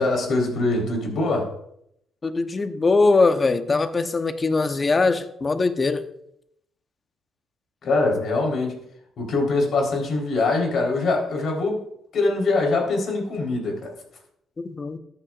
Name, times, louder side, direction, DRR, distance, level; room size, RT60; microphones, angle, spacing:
voice 1, 0.0-1.5 7.8-8.8 9.2-11.8 12.1-13.9, left 3 dB, 65° left, 0 dB, 4.0 m, -23 dB
voice 2, 2.2-6.1 14.6-15.0, left 3 dB, 30° left, 8 dB, 1.0 m, -21 dB
13.5 x 9.1 x 2.5 m, 0.74 s
cardioid pair, 90°, 0 cm